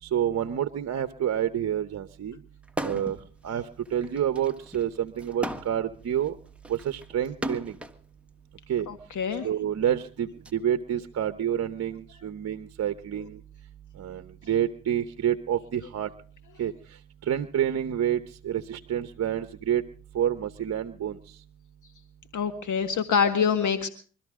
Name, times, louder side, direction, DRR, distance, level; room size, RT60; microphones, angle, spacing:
voice 1, 0.0-2.4 2.8-3.2 3.4-6.4 6.7-7.8 8.7-8.9 9.3-13.4 13.9-16.1 16.6-16.7 17.2-19.8 20.1-21.4, right 10 dB, 45° right, 11 dB, 1.0 m, -28 dB
sound 1, 2.7-3.2 3.6-8.0 8.9-10.5, right 1 dB, 5° right, 1.7 m, -36 dB
voice 2, 8.9-9.5 22.3-23.9, left 6 dB, 55° left, 9 dB, 1.9 m, -25 dB
23.5 x 13.5 x 3.7 m, 0.40 s
hypercardioid pair, 60°, 36 cm